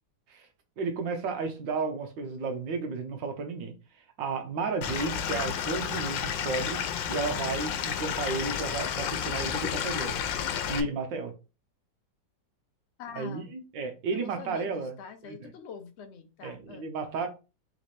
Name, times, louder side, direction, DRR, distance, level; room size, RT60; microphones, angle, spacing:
voice 1, 0.8-3.7 4.2-10.1 10.7-11.3 13.2-14.9 15.2-15.5 16.4-17.3, right 4 dB, 80° right, 1.7 m, -33 dB
Stream / Liquid, 4.8-10.8, left 8 dB, 85° left, 1.4 m, -31 dB
voice 2, 13.0-13.5 14.1-16.9, left 7 dB, 60° left, 0.7 m, -44 dB
3.9 x 3.2 x 4.2 m
omnidirectional pair, 2.0 m